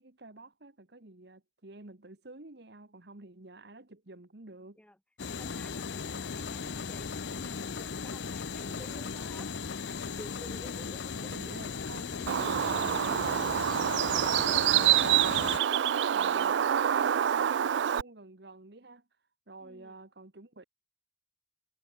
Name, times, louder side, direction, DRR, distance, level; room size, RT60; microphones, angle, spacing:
voice 1, 0.0-4.8 10.0-10.2 11.3-14.3 14.7-19.1 19.5-20.7, right 2 dB, 65° right, 1.6 m, -49 dB
sound 1, 5.2-15.6, left 5 dB, 75° left, 0.6 m, -37 dB
voice 2, 5.3-9.5 10.2-11.3 19.6-20.0, equal, 5° left, 8.0 m, -52 dB
Bird, 12.3-18.0, right 10 dB, 80° right, 0.4 m, -26 dB
head